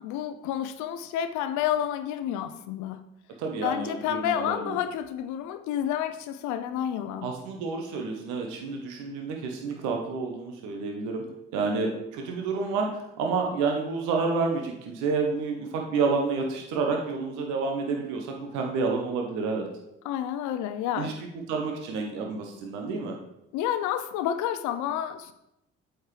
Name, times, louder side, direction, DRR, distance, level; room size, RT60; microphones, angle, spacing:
voice 1, 0.0-3.0 3.6-7.3 20.0-21.1 23.5-25.3, left 10 dB, 70° left, 10 dB, 0.6 m, -30 dB
voice 2, 3.4-4.8 7.2-11.2 11.5-19.7 21.0-21.1 21.5-23.2, right 4 dB, 75° right, 2 dB, 1.0 m, -29 dB
8.2 x 4.5 x 3.2 m, 0.84 s
hypercardioid pair, 50°, 30 cm